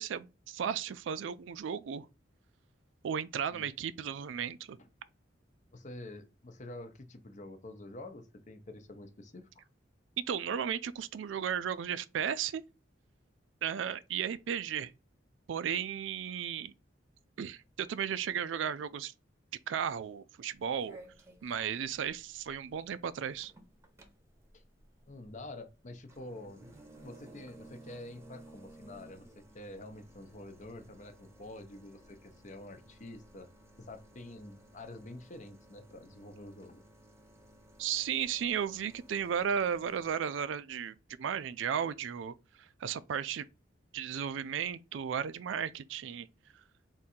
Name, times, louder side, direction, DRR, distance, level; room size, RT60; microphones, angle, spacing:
voice 1, 0.0-2.1 3.0-4.8 10.3-12.6 13.6-14.9 15.5-16.7 17.4-19.1 19.7-21.0 21.4-23.5 37.8-42.3 42.8-43.5 43.9-46.3, right 8 dB, 80° right, 0.4 m, -34 dB
voice 2, 5.7-9.6 24.5-24.6 25.1-26.6 27.0-33.5 33.8-36.8, left 2 dB, 40° left, 0.6 m, -47 dB
sound 1, 20.5-40.1, right 1 dB, 15° right, 0.8 m, -57 dB
3.7 x 2.7 x 4.2 m
head